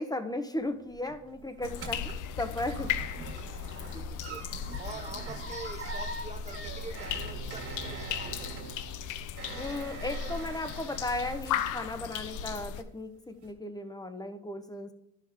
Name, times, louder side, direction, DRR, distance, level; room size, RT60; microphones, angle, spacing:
voice 1, 0.0-2.9 9.6-14.9, left 2 dB, 15° left, 9 dB, 0.8 m, -36 dB
sound 1, 0.6-12.2 12.5-13.0 13.4-13.5, right 4 dB, 50° right, 1.9 m, -44 dB
sound 2, 1.6-12.8, left 8 dB, 80° left, 0.6 m, -37 dB
voice 2, 3.8-4.5 4.8-8.7, right 4 dB, 25° right, 7 dB, 0.5 m, -45 dB
sound 3, 6.6-9.7, right 8 dB, 90° right, 0.7 m, -46 dB
11.5 x 5.7 x 3.5 m, 0.83 s
cardioid pair, 90°, 30 cm